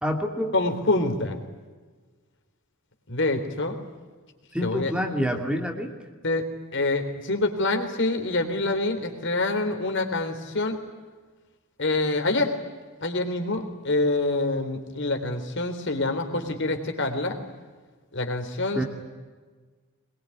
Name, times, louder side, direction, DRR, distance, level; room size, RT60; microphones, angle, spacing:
voice 1, 0.0-0.5 4.5-5.9 18.7-18.8, equal, 5° right, 3 dB, 2.6 m, -27 dB
voice 2, 0.5-1.4 3.1-3.8 4.6-4.9 6.2-10.8 11.8-12.6 13.0-17.4 18.1-18.8, left 2 dB, 60° left, 6 dB, 3.6 m, -26 dB
24.0 x 22.0 x 9.7 m, 1.4 s
head